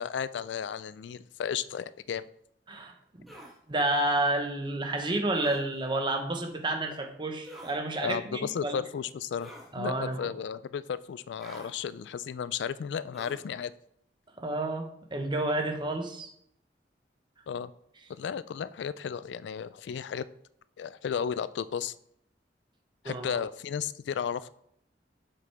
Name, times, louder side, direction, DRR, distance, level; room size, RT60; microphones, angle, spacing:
voice 1, 0.0-2.3 8.0-13.7 17.5-17.7 18.1-20.3 20.8-21.9 23.0-24.5, left 7 dB, 80° left, 17 dB, 0.3 m, -34 dB
sound 1, 3.3-3.5 5.3-5.6 7.4-7.8 9.4-9.7 11.4-11.7 13.1-13.5, equal, ahead, 1.4 m, -46 dB
voice 2, 3.7-8.8 9.7-10.3 14.4-16.3 23.0-23.4, right 2 dB, 25° right, 4 dB, 1.0 m, -30 dB
7.6 x 5.9 x 3.4 m, 0.71 s
head